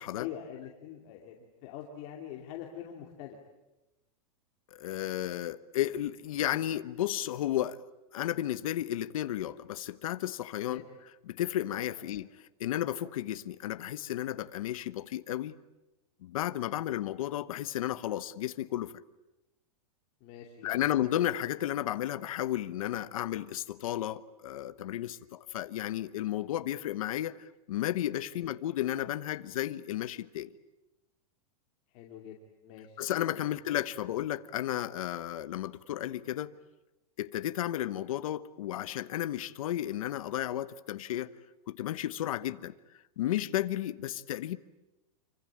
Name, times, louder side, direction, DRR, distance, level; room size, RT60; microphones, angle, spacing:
voice 1, 0.2-3.4 10.7-10.8 20.2-20.9 28.3-28.4 31.9-33.0 33.4-33.6, left 10 dB, 35° left, 2.6 m, -44 dB
voice 2, 4.7-7.8 8.1-10.8 11.3-12.3 12.6-15.6 16.2-18.9 20.6-30.5 33.0-36.5 37.2-41.3 41.7-42.7 43.2-44.6, left 12 dB, 65° left, 1.2 m, -33 dB
27.0 x 25.0 x 8.8 m
supercardioid pair, 175°, 19 cm